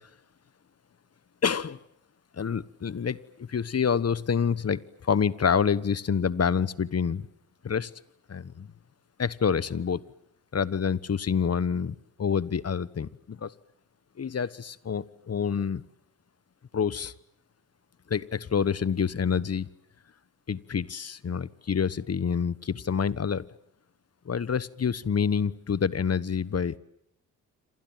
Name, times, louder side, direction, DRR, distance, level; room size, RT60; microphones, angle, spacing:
voice 1, 1.4-1.8 2.3-7.2 7.6-7.9 8.3-8.7 9.2-10.0 10.5-13.5 14.2-15.8 16.7-17.1 18.1-19.7 20.5-23.5 24.2-26.8, left 6 dB, 40° left, 18 dB, 1.3 m, -27 dB
27.5 x 27.5 x 7.6 m, 0.77 s
supercardioid pair, 50°, 36 cm